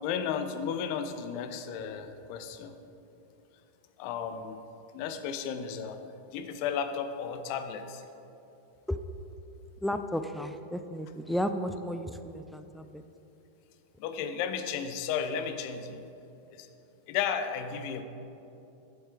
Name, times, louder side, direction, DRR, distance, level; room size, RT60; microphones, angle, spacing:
voice 1, 0.0-2.7 4.0-4.6 4.9-6.0 6.3-8.0 14.0-16.0 16.5-16.7 17.1-18.0, left 7 dB, 45° left, 8 dB, 0.6 m, -34 dB
voice 2, 9.8-13.0, equal, ahead, 8 dB, 0.3 m, -33 dB
7.9 x 7.3 x 4.8 m, 2.9 s
figure-of-eight pair, 90°, 0 cm